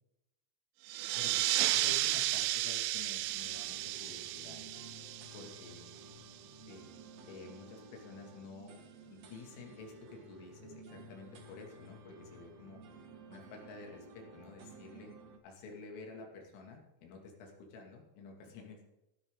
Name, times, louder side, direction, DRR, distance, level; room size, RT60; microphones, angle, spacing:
sound 1, 0.9-6.1, right 16 dB, 90° right, 2.5 m, -33 dB
voice 1, 1.2-1.5 1.7-4.6 5.3-6.0 6.7-6.8 7.3-8.8 9.1-12.8 13.3-15.1 15.4-18.8, left 3 dB, 85° left, 1 dB, 5.0 m, -50 dB
sound 2, 3.3-15.4, right 2 dB, 60° right, 1.8 m, -54 dB
16.5 x 12.5 x 3.8 m, 0.91 s
omnidirectional pair, 5.7 m